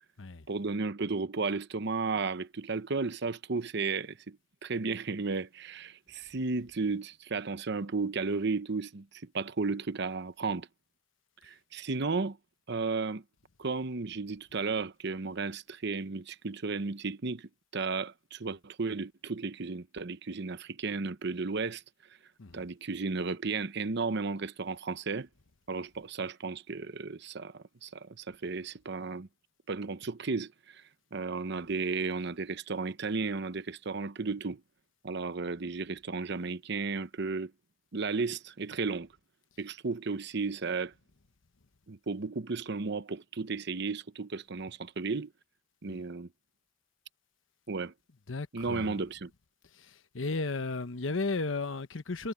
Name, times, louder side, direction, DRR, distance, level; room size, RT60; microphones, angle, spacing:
voice 1, 0.5-10.7 11.4-12.4 12.7-13.2 13.6-21.8 22.5-25.3 25.7-29.3 29.7-30.8 31.1-34.6 35.0-37.5 37.9-39.1 39.6-40.9 41.9-45.3 45.8-46.3 47.7-47.9 48.5-49.3, right 4 dB, 60° right, 0.9 m, -34 dB
voice 2, 48.3-49.0 50.1-52.3, left 3 dB, 80° left, 1.0 m, -34 dB
head